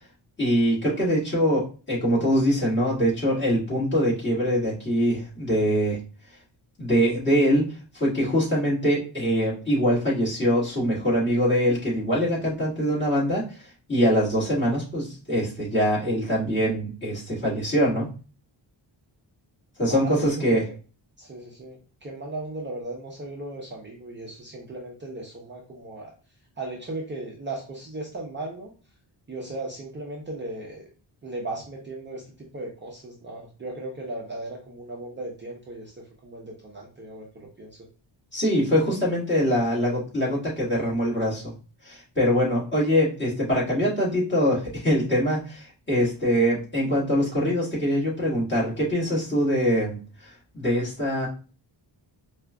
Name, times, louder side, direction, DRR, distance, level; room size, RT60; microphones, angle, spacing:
voice 1, 0.4-6.0 6.8-18.1 19.8-20.6 38.3-41.5 41.8-51.3, equal, 25° left, -8 dB, 1.9 m, -23 dB
voice 2, 19.9-20.6 21.2-26.1 26.6-28.7 29.3-30.8 31.2-37.8, right 2 dB, 25° right, -2 dB, 0.6 m, -37 dB
4.7 x 2.5 x 2.2 m, 0.36 s
wide cardioid pair, 160°, 46 cm